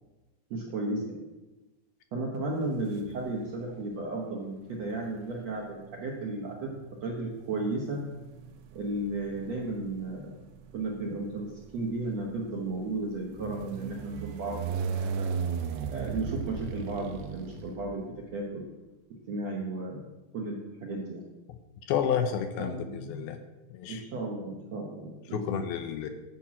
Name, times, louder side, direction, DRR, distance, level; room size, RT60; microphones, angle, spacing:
voice 1, 0.5-1.2 2.1-6.7 7.0-8.0 8.7-10.4 10.7-15.3 15.9-18.0 18.3-18.6 19.3-20.0 20.3-21.2 22.6-23.3 23.9-25.7, right 2 dB, 70° right, -2 dB, 1.6 m, -34 dB
sound 1, 2.9-3.6 4.7-18.4, right 6 dB, 90° right, 3.0 m, -38 dB
voice 2, 21.9-23.4 23.7-24.0 25.3-26.1, left 8 dB, 80° left, 7 dB, 2.3 m, -30 dB
11.0 x 7.2 x 6.0 m, 1.1 s
omnidirectional pair, 4.7 m